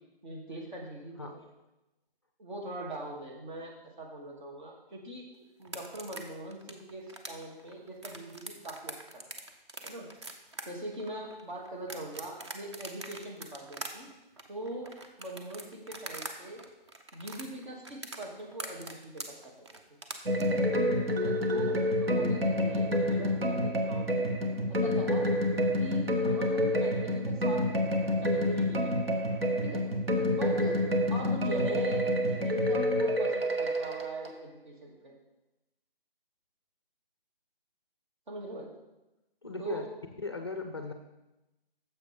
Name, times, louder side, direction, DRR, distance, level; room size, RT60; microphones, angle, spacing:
voice 1, 0.2-1.4 2.4-3.7 4.0-5.2 5.6-9.0 9.8-10.1 10.7-14.1 14.5-14.9 15.2-16.6 17.1-19.2 20.4-20.6 21.2-24.3 24.7-25.3 25.8-29.1 29.6-29.8 30.3-30.8 31.1-35.1 38.3-38.7 39.6-39.9, right 1 dB, 55° right, -2 dB, 2.8 m, -41 dB
sound 1, 5.6-16.3 16.6-20.4, right 2 dB, 30° right, 0.7 m, -43 dB
sound 2, 20.3-34.3, left 1 dB, 80° right, 1.5 m, -28 dB
voice 2, 39.4-39.9 40.2-40.9, left 3 dB, 30° left, 6 dB, 0.4 m, -37 dB
10.5 x 7.3 x 3.7 m, 0.98 s
hypercardioid pair, 165°, 29 cm